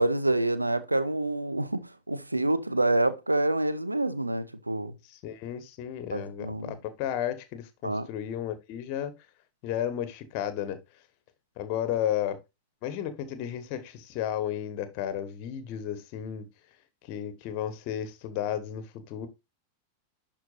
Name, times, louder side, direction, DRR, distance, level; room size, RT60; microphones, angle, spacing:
voice 1, 0.0-4.9 6.1-6.8 7.8-8.1, right 2 dB, 85° right, 0.5 m, -27 dB
voice 2, 5.1-9.1 9.6-10.8 11.6-12.4 12.8-16.5 17.1-19.3, left 10 dB, 45° left, 1.3 m, -33 dB
11.0 x 4.5 x 2.6 m
figure-of-eight pair, 90°, 0 cm